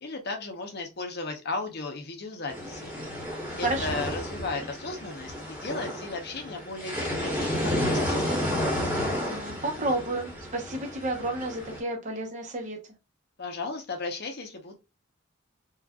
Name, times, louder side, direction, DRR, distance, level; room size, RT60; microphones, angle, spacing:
voice 1, 0.0-2.9 3.6-8.5 13.4-14.8, left 3 dB, 50° left, 4 dB, 0.8 m, -35 dB
sound 1, 2.5-11.8, left 1 dB, 10° right, 1.2 m, -31 dB
voice 2, 3.6-4.0 9.3-12.8, right 2 dB, 35° right, 2 dB, 0.8 m, -31 dB
4.3 x 2.4 x 2.3 m, 0.27 s
head